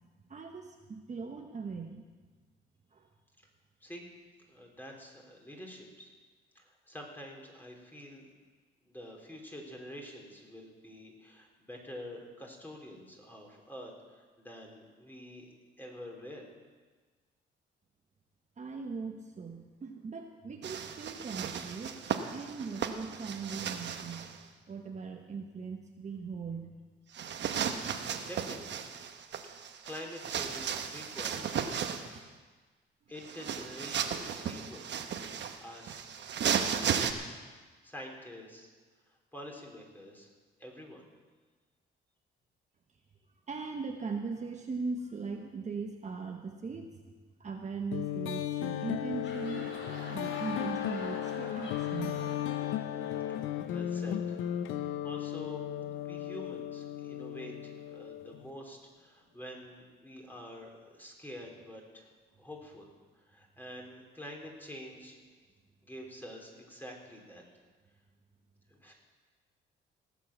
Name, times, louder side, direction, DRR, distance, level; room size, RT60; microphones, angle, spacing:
voice 1, 0.3-2.0 2.9-3.1 18.6-22.0 22.3-24.3 24.7-26.8 43.5-47.0 47.4-49.7 50.1-52.3, right 4 dB, 35° right, 3 dB, 1.1 m, -39 dB
voice 2, 4.5-6.1 6.6-8.3 8.8-16.5 27.9-28.8 29.8-31.8 33.1-34.8 35.6-36.1 36.5-37.0 37.8-38.7 39.1-40.3 40.6-41.0 53.3-53.4 53.7-54.4 55.0-55.7 56.0-62.1 62.4-62.9 63.2-65.3 65.8-67.4 68.7-68.9, equal, 10° left, 0 dB, 3.5 m, -47 dB
sound 1, 20.6-24.4 27.1-32.2 33.2-37.1, right 8 dB, 65° right, 1.1 m, -35 dB
sound 2, 47.9-58.5, left 11 dB, 90° left, 0.7 m, -35 dB
sound 3, 49.0-54.5, left 2 dB, 65° left, 3.2 m, -47 dB
17.5 x 7.5 x 7.3 m, 1.4 s
cardioid pair, 90°, 20 cm